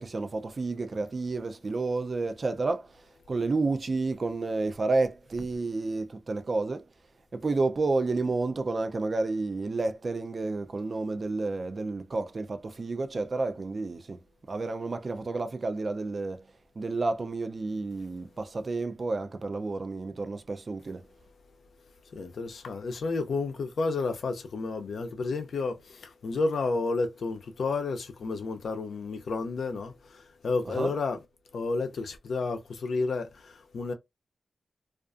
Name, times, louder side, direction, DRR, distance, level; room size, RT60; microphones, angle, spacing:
voice 1, 0.0-2.9 3.3-6.8 7.3-14.2 14.5-16.4 16.8-21.0 30.8-30.9, right 3 dB, 50° right, 0.4 m, -30 dB
voice 2, 22.1-31.2 31.5-33.9, left 3 dB, 80° left, 0.6 m, -31 dB
2.4 x 2.3 x 2.5 m
cardioid pair, 65°, 0 cm